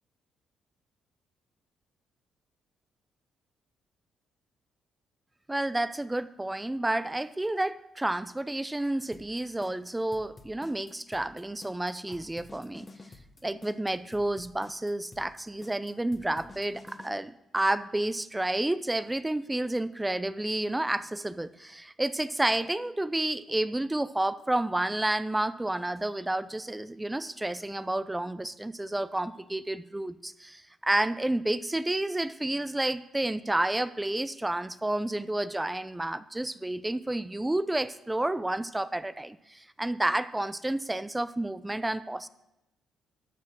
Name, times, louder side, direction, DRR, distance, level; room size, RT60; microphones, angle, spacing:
voice 1, 5.5-12.9 13.4-42.3, right 1 dB, 10° right, 15 dB, 0.4 m, -30 dB
sound 1, 9.1-17.1, left 3 dB, 30° left, 1.1 m, -50 dB
12.0 x 6.3 x 6.5 m, 0.92 s
cardioid pair, 90°, 0 cm